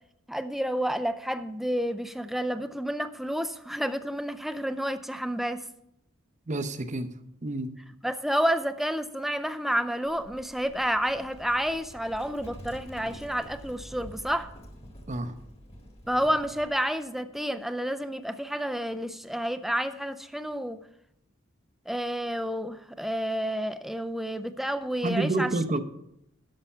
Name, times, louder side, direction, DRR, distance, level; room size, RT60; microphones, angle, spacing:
voice 1, 0.3-5.6 8.0-14.5 16.1-20.8 21.9-25.5, equal, ahead, 10 dB, 0.5 m, -30 dB
voice 2, 6.5-7.1 7.4-7.7 15.1-15.3 25.0-25.8, right 2 dB, 35° right, 10 dB, 0.7 m, -28 dB
Livestock farm animals working animals, 10.0-16.7, equal, 30° left, 1.8 m, -48 dB
sound 1, 12.8-17.3, right 1 dB, 75° left, 5.0 m, -51 dB
13.0 x 5.7 x 5.6 m, 0.79 s
head